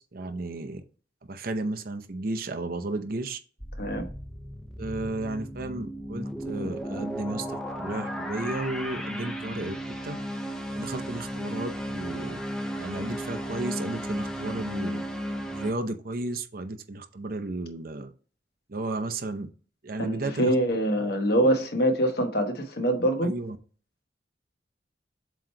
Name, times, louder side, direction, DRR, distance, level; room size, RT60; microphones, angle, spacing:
voice 1, 0.1-0.8 1.3-3.4 4.8-9.8 10.0-10.2 10.8-12.4 12.8-15.0 15.5-18.1 18.7-19.5 19.8-20.5 20.9-21.1 23.2-23.6, right 2 dB, 55° right, 0.7 m, -33 dB
sound 1, 3.6-15.7, equal, 5° left, 0.7 m, -34 dB
voice 2, 3.8-4.1 20.0-23.3, right 1 dB, 60° left, 1.1 m, -24 dB
7.7 x 3.1 x 4.5 m
head